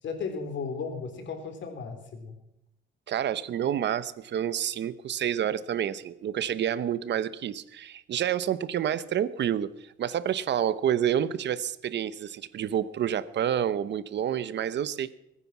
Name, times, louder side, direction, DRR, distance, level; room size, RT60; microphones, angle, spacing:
voice 1, 0.0-2.4, left 5 dB, 70° left, 5 dB, 3.7 m, -35 dB
voice 2, 3.1-15.1, right 10 dB, 60° right, 16 dB, 0.9 m, -29 dB
22.0 x 9.8 x 6.0 m, 0.83 s
cardioid pair, 90°, 20 cm